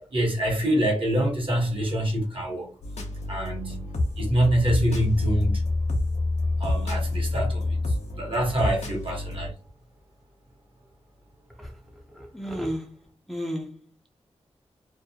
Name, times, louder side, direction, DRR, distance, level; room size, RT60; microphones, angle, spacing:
voice 1, 0.1-2.7 3.3-5.6 6.6-7.8 8.1-9.5, right 1 dB, 50° right, 1.1 m, -25 dB
sound 1, 2.8-9.5, left 2 dB, 75° left, 0.6 m, -28 dB
voice 2, 12.2-12.9 13.3-13.8, equal, ahead, 0.5 m, -32 dB
2.3 x 2.1 x 2.7 m
cardioid pair, 45°, 12 cm